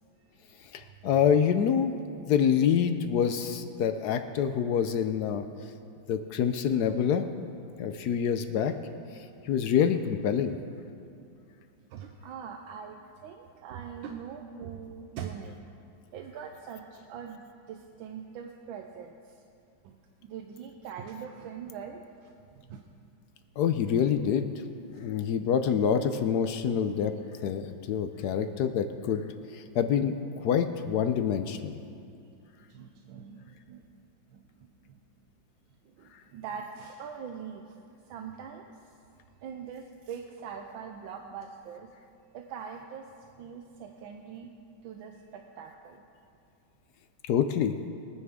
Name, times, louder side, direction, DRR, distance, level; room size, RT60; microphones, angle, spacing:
voice 1, 0.7-2.0 2.3-5.4 6.1-7.3 7.8-8.7 9.5-10.6 23.6-24.5 25.0-27.1 27.4-29.2 29.5-30.1 30.4-31.7 47.3-47.8, left 8 dB, 70° left, 9 dB, 1.0 m, -26 dB
voice 2, 7.8-8.3 9.3-9.4 11.8-15.7 16.1-19.4 19.8-22.3 22.6-22.8 24.9-25.0 28.2-28.3 32.7-33.9 34.3-34.5 34.8-35.0 35.8-37.7 38.1-38.7 39.4-41.9 42.3-43.1 43.4-44.5 44.8-46.0, right 7 dB, 85° right, 4 dB, 1.4 m, -42 dB
21.5 x 9.6 x 3.6 m, 2.5 s
omnidirectional pair, 2.1 m